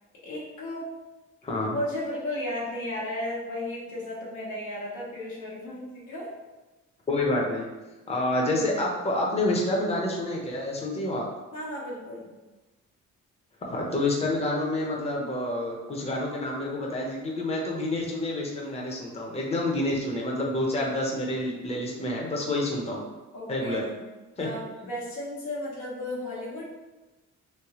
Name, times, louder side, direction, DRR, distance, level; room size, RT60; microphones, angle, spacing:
voice 1, 0.2-0.9 1.7-6.3 11.5-12.3 23.3-24.0 24.4-26.8, left 1 dB, 80° left, -4 dB, 1.2 m, -34 dB
voice 2, 1.4-1.8 7.1-7.7 8.1-11.2 13.7-23.0 23.5-23.8 24.4-24.5, left 1 dB, 20° left, -2 dB, 0.8 m, -28 dB
3.3 x 3.0 x 3.0 m, 1.1 s
cardioid pair, 90°, 30 cm